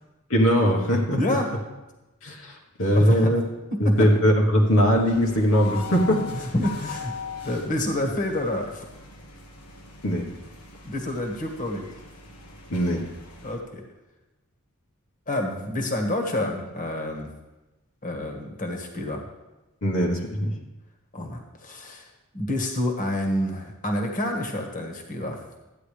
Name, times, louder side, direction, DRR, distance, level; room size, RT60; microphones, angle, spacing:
voice 1, 0.3-1.4 2.2-3.4 3.8-6.3 10.0-10.3 12.7-13.1 19.8-20.5, equal, 65° left, -1 dB, 1.3 m, -21 dB
voice 2, 1.2-1.5 2.9-3.4 3.7-4.1 6.3-7.1 7.4-8.8 10.8-11.9 13.4-13.8 15.3-17.3 18.0-19.3 21.1-22.1 22.3-25.4, left 1 dB, 40° left, 2 dB, 1.5 m, -28 dB
sound 1, 4.5-13.6, left 5 dB, 85° left, 1.4 m, -40 dB
14.0 x 9.6 x 3.3 m, 1.0 s
head